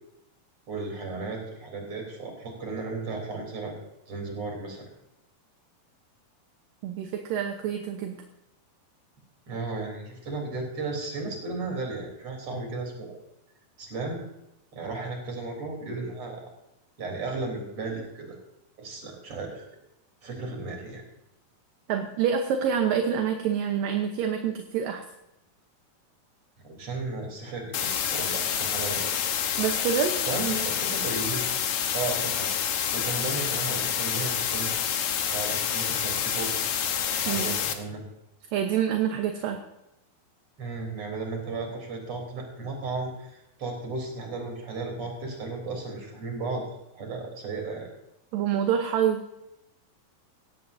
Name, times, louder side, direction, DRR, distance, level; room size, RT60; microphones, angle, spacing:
voice 1, 0.7-3.8 4.1-4.9 9.5-13.2 13.8-14.2 14.7-16.4 17.0-18.4 18.8-19.7 20.2-21.0 26.6-29.1 30.3-31.4 31.9-32.5 32.9-34.7 35.2-36.7 37.2-38.0 40.6-46.6 46.9-47.9, right 3 dB, 40° right, 1 dB, 4.4 m, -34 dB
voice 2, 6.8-8.2 21.9-25.0 29.6-30.1 37.3-37.6 38.5-39.6 48.3-49.2, right 8 dB, 70° right, 4 dB, 2.6 m, -27 dB
sound 1, 27.7-37.7, left 8 dB, 65° left, 2.2 m, -28 dB
18.0 x 15.5 x 2.7 m, 0.86 s
omnidirectional pair, 4.3 m